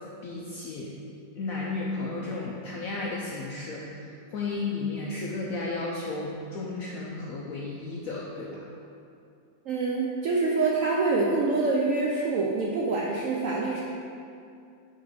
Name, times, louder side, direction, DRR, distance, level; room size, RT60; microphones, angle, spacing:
voice 1, 0.2-0.9 1.4-8.7, left 3 dB, 70° left, -3 dB, 0.8 m, -33 dB
voice 2, 9.7-13.8, right 3 dB, 80° right, -3 dB, 0.7 m, -26 dB
5.6 x 3.7 x 5.1 m, 2.5 s
omnidirectional pair, 2.0 m